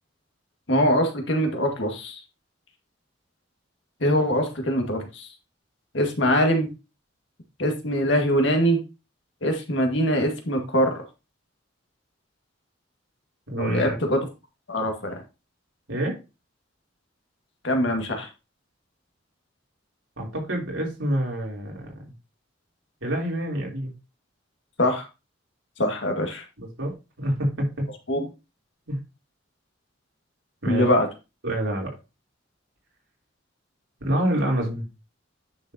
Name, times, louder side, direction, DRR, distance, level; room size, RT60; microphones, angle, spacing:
voice 1, 0.7-2.2 4.0-5.3 5.9-6.7 7.6-8.8 9.4-11.0 13.6-14.2 14.7-15.2 17.6-18.3 24.8-25.1 25.8-26.4 28.1-28.3 30.7-31.1, equal, 65° left, 3 dB, 1.8 m, -23 dB
voice 2, 13.5-14.0 15.9-16.2 20.2-21.9 23.0-23.9 26.6-27.8 28.9-29.0 30.6-30.9 31.4-31.9 34.0-34.8, right 1 dB, 85° right, -1 dB, 3.3 m, -27 dB
9.7 x 6.4 x 2.8 m, 0.28 s
head